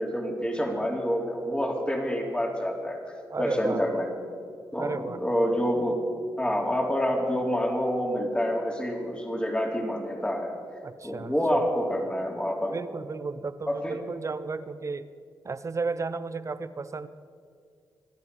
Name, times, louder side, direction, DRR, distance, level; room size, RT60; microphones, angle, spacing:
voice 1, 0.0-3.0 3.4-4.1 4.7-6.0 6.4-10.5 11.0-12.7 13.7-14.0, equal, 15° left, 1 dB, 3.6 m, -27 dB
voice 2, 3.3-4.0 4.8-5.2 10.8-11.3 12.7-15.1 15.4-17.1, right 4 dB, 40° right, 13 dB, 0.9 m, -33 dB
25.0 x 10.5 x 5.5 m, 2.2 s
supercardioid pair, 50°, 8 cm